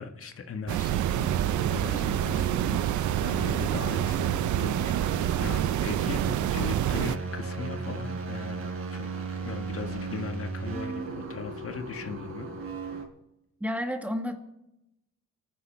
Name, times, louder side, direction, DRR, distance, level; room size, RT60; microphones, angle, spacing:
voice 1, 0.0-1.3 1.7-8.6 8.9-9.1 9.4-12.5, left 5 dB, 45° left, 6 dB, 1.7 m, -39 dB
sound 1, 0.7-7.2, right 13 dB, 75° right, 0.6 m, -27 dB
sound 2, 0.9-13.0, right 4 dB, 45° right, 4.7 m, -35 dB
voice 2, 13.6-14.3, left 1 dB, 5° right, 5 dB, 2.1 m, -30 dB
28.5 x 10.0 x 4.5 m, 0.89 s
cardioid pair, 90°, 30 cm